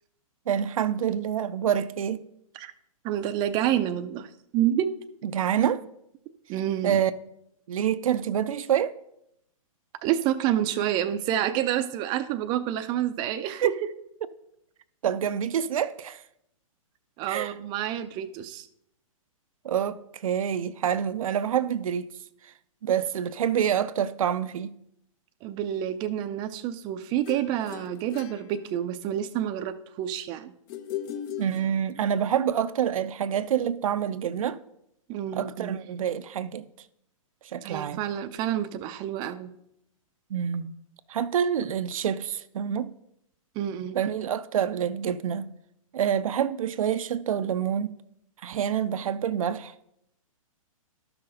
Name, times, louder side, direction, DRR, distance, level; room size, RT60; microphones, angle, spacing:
voice 1, 0.5-2.2 5.2-5.8 6.8-7.1 7.7-9.0 13.6-13.7 15.0-16.2 17.3-17.5 19.6-22.1 22.8-24.8 31.4-34.6 35.3-36.7 37.5-38.0 40.3-40.8 41.1-42.9 43.9-45.5 45.9-48.0 48.4-49.7, right 9 dB, 70° right, 0.5 m, -27 dB
voice 2, 3.0-4.9 6.5-7.0 10.0-13.7 17.2-18.7 25.4-30.5 35.1-35.8 37.6-39.5 43.6-44.0, right 11 dB, 25° right, 0.5 m, -28 dB
Ukulele short theme, 27.3-29.2 30.7-32.2, left 10 dB, 30° left, 0.5 m, -38 dB
12.0 x 5.9 x 3.8 m
hypercardioid pair, 140°, 18 cm